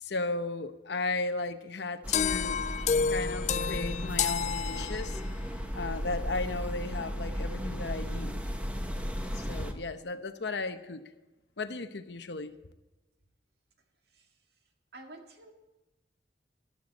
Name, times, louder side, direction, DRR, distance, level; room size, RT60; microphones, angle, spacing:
voice 1, 0.0-2.6 3.1-5.2 5.7-8.4 9.4-11.0 11.6-12.5, left 3 dB, 70° left, 10 dB, 0.9 m, -35 dB
sound 1, 2.0-9.7, equal, 10° right, 1.1 m, -35 dB
sound 2, 2.1-5.4, left 6 dB, 40° left, 0.3 m, -30 dB
voice 2, 14.9-15.5, right 2 dB, 60° right, 3 dB, 2.0 m, -48 dB
14.5 x 12.0 x 4.2 m, 1.1 s
head